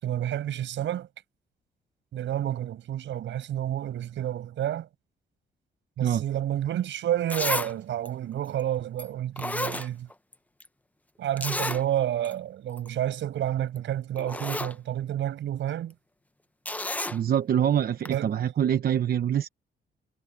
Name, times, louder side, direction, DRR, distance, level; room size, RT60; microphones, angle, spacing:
voice 1, 0.0-1.1 2.1-4.9 6.0-10.1 11.2-15.9 18.1-18.3, right 11 dB, 80° right, 6.1 m, -30 dB
Zipper (clothing), 6.8-6.9 7.3-7.7 8.0-8.1 9.0-9.1 9.4-10.3 10.6-10.7 11.4-11.8 12.2-12.3 12.7-12.9 13.8-13.9 14.2-14.7 16.6-17.2 18.0-18.1, left 2 dB, 10° left, 0.6 m, -31 dB
voice 2, 17.1-19.5, right 9 dB, 50° right, 0.9 m, -25 dB
cardioid pair, 135°, 19 cm